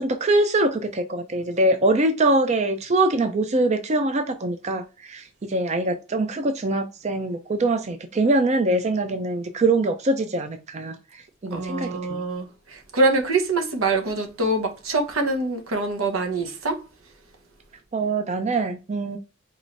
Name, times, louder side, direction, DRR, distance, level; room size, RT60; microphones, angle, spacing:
voice 1, 0.0-11.0 11.4-12.2 17.9-19.2, right 2 dB, 35° right, 0.4 m, -23 dB
voice 2, 11.5-16.8, right 2 dB, 85° right, 1.0 m, -24 dB
4.8 x 3.0 x 2.6 m
head